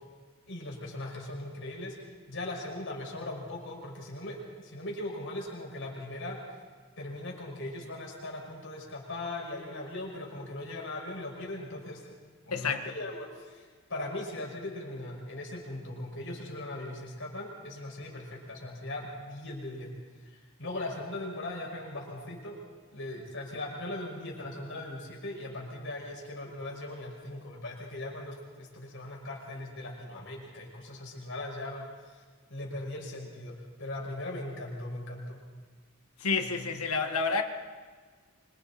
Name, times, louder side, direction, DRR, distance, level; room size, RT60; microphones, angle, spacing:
voice 1, 0.5-6.4 7.0-12.1 12.4-19.9 20.2-22.6 22.9-32.2 32.5-35.4, left 1 dB, 60° left, -1 dB, 6.1 m, -39 dB
voice 2, 12.5-12.8 36.2-37.4, left 4 dB, 80° left, 5 dB, 1.8 m, -29 dB
27.5 x 25.5 x 4.4 m, 1.5 s
head